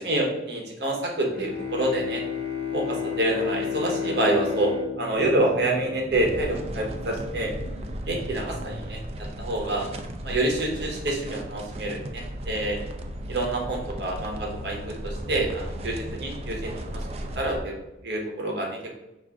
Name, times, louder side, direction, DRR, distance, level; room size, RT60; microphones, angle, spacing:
voice 1, 0.0-2.2 2.7-7.5 8.1-9.0 9.4-9.9 10.2-12.8 13.3-17.0 17.4-17.7 18.0-18.9, right 1 dB, 60° right, 0 dB, 0.9 m, -27 dB
Bowed string instrument, 1.3-6.3, left 8 dB, 75° left, 1.1 m, -32 dB
sound 1, 5.1-9.4, right 1 dB, 30° left, 0.9 m, -41 dB
sound 2, 6.1-17.6, right 1 dB, 35° right, 0.4 m, -36 dB
5.5 x 2.5 x 3.5 m, 0.96 s
head